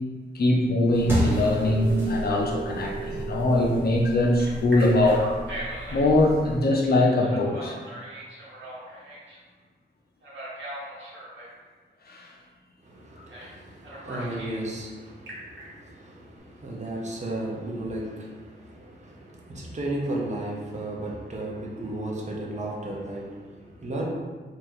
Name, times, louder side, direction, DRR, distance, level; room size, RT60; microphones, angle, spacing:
voice 1, 0.3-5.3 5.9-7.8 12.1-12.3, left 1 dB, 55° left, -1 dB, 0.6 m, -22 dB
sound 1, 0.9-6.6, equal, 10° right, 1.0 m, -33 dB
Telephone, 1.6-3.8 4.4-6.1 7.1-9.4 10.2-11.5 13.3-13.5 13.8-14.6 15.1-15.6, right 2 dB, 75° right, 1.1 m, -38 dB
voice 2, 12.8-24.0, right 1 dB, 35° right, -3 dB, 0.7 m, -34 dB
3.6 x 2.7 x 3.0 m, 1.4 s
wide cardioid pair, 135°, 19 cm